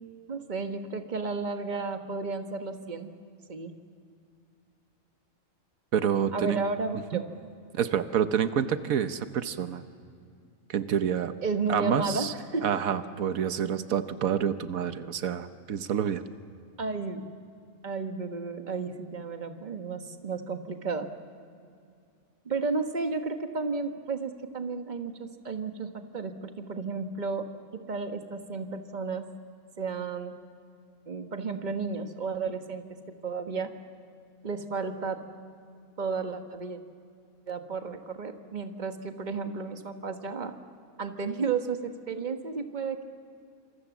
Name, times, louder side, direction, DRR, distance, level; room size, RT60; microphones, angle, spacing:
voice 1, 0.3-3.1 3.5-3.7 6.3-7.2 11.4-12.7 16.8-17.2 17.8-21.1 22.4-29.3 29.8-30.4 31.1-32.8 33.2-33.7 34.4-35.2 36.0-36.8 37.5-40.5 41.0-43.0, right 4 dB, 35° right, 6 dB, 1.4 m, -33 dB
voice 2, 5.9-6.6 7.1-7.2 7.7-9.8 10.7-11.3 11.7-12.3 12.6-16.2, right 8 dB, 90° right, 10 dB, 1.4 m, -28 dB
27.0 x 27.0 x 7.2 m, 2.4 s
omnidirectional pair, 1.4 m